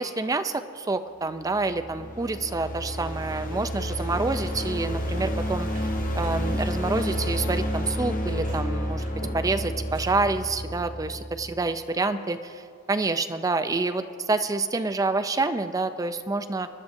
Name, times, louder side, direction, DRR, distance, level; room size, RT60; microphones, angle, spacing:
voice 1, 0.0-5.7 6.2-9.0 9.3-16.7, right 3 dB, 15° right, 10 dB, 0.3 m, -27 dB
sound 1, 1.3-11.5, equal, 40° left, 1.1 m, -30 dB
Sliding door, 3.9-11.0, right 1 dB, 35° right, 1.1 m, -42 dB
22.0 x 12.0 x 2.6 m, 2.4 s
head